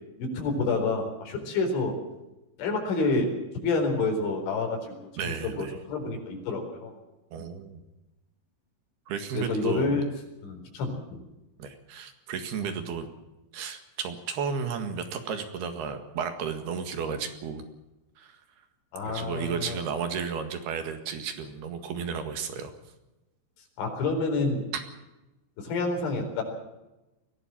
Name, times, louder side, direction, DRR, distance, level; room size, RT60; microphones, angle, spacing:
voice 1, 0.2-1.9 2.6-3.3 3.6-5.1 5.4-6.9 7.4-7.5 9.3-10.1 10.4-11.2 18.9-19.8 23.8-24.6 25.6-26.4, left 3 dB, 70° left, 2 dB, 6.6 m, -28 dB
voice 2, 5.2-5.8 7.3-7.8 9.1-10.0 11.6-13.1 13.5-17.6 18.2-18.4 19.0-22.7, right 6 dB, 60° right, 7 dB, 3.4 m, -33 dB
22.5 x 17.0 x 7.6 m, 1.0 s
omnidirectional pair, 5.7 m